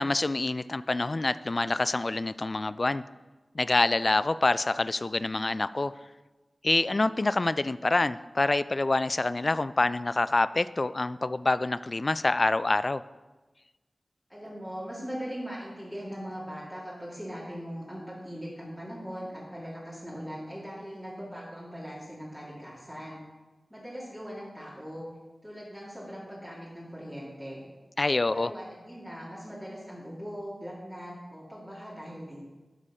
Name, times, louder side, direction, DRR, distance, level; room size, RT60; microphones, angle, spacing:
voice 1, 0.0-3.0 3.5-5.9 6.6-13.0 28.0-28.5, left 2 dB, 40° left, 15 dB, 0.3 m, -26 dB
voice 2, 14.3-23.2 23.7-25.1 25.4-27.6 28.3-32.4, equal, 5° right, -8 dB, 2.6 m, -40 dB
12.0 x 5.0 x 5.6 m, 1.2 s
wide cardioid pair, 85°, 0 cm